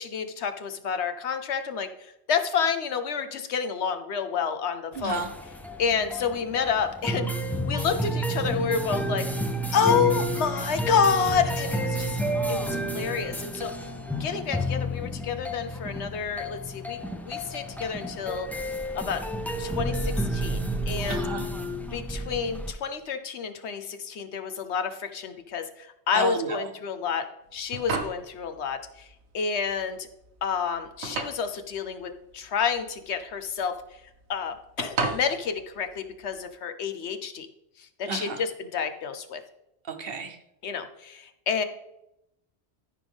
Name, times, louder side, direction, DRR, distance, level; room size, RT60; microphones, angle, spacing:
voice 1, 0.0-5.2 5.8-7.3 7.7-9.3 9.7-12.2 12.5-13.7 14.2-17.0 17.2-18.5 18.9-19.2 19.6-21.2 21.9-27.3 27.5-29.1 29.3-30.1 30.4-33.8 34.3-37.5 37.8-39.4 40.6-41.6, left 6 dB, 80° left, 8 dB, 1.1 m, -29 dB
sound 1, 4.9-22.7, right 1 dB, ahead, 0.5 m, -31 dB
voice 2, 5.0-5.3 21.1-21.5 26.1-26.6 38.1-38.4 39.9-40.4, right 5 dB, 60° right, 7 dB, 1.2 m, -32 dB
sound 2, 27.5-36.4, right 4 dB, 80° right, 1.3 m, -36 dB
13.5 x 5.2 x 3.5 m, 0.84 s
omnidirectional pair, 1.1 m